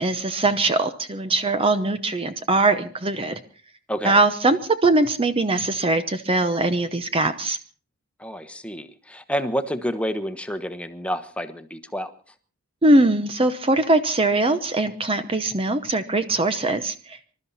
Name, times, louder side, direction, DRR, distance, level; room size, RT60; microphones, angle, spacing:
voice 1, 0.0-3.4 4.0-7.6 12.8-17.3, right 2 dB, 25° right, 9 dB, 0.8 m, -21 dB
voice 2, 3.9-4.2 8.2-12.1, equal, 5° left, 8 dB, 1.2 m, -29 dB
26.0 x 13.0 x 4.2 m, 0.41 s
head